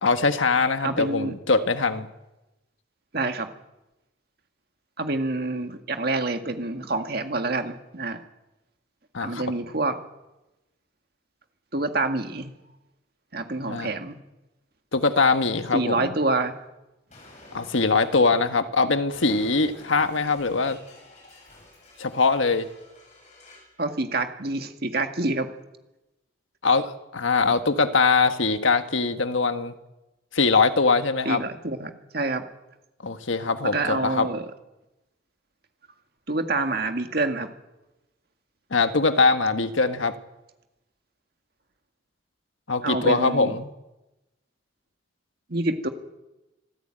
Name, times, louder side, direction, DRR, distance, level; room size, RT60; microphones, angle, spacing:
voice 1, 0.0-2.1 9.1-9.4 13.7-13.9 14.9-16.1 17.5-20.8 22.0-22.7 26.6-29.7 30.3-31.4 33.0-34.3 38.7-40.1 42.7-43.7, left 4 dB, 80° left, 9 dB, 1.5 m, -22 dB
voice 2, 0.8-1.3 3.1-3.5 5.0-8.2 9.2-10.0 11.7-12.5 13.3-14.2 15.7-16.5 23.8-25.5 31.3-32.5 33.7-34.5 36.3-37.5 42.8-43.6 45.5-45.9, right 2 dB, 50° right, 6 dB, 2.0 m, -27 dB
Explosion, 17.1-23.8, left 1 dB, 35° left, 7.2 m, -50 dB
25.5 x 14.5 x 9.0 m, 0.98 s
head